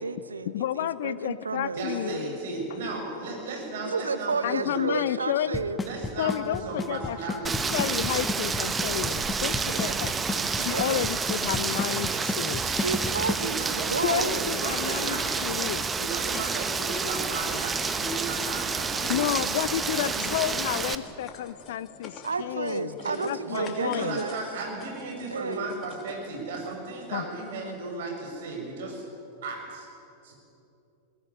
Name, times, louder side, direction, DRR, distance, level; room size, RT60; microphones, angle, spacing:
voice 1, 0.0-1.9 3.8-5.8 9.7-10.0 10.3-11.1 12.6-14.6 18.9-19.2 22.2-24.4 25.3-25.7, right 4 dB, 75° right, 13 dB, 0.9 m, -32 dB
voice 2, 0.5-2.3 4.4-5.6 6.2-7.2 7.7-10.2 10.5-12.6 14.0-15.8 19.1-22.9 23.2-24.2 27.1-27.2, left 12 dB, 55° left, 17 dB, 0.5 m, -31 dB
voice 3, 1.7-4.8 5.8-7.8 9.7-9.9 13.4-13.9 14.2-15.3 15.9-19.3 20.1-20.4 23.0-23.2 23.4-29.1 29.4-29.9 30.2-30.4, right 3 dB, 55° right, 1 dB, 6.9 m, -35 dB
Drum kit / Snare drum / Bass drum, 5.5-13.5, left 4 dB, 15° left, 1.1 m, -32 dB
Rain, 7.4-20.9, right 5 dB, 15° right, 1.1 m, -29 dB
sound 1, 9.7-26.7, left 5 dB, 30° left, 2.8 m, -46 dB
21.5 x 18.0 x 9.9 m, 2.9 s
figure-of-eight pair, 90°, 0 cm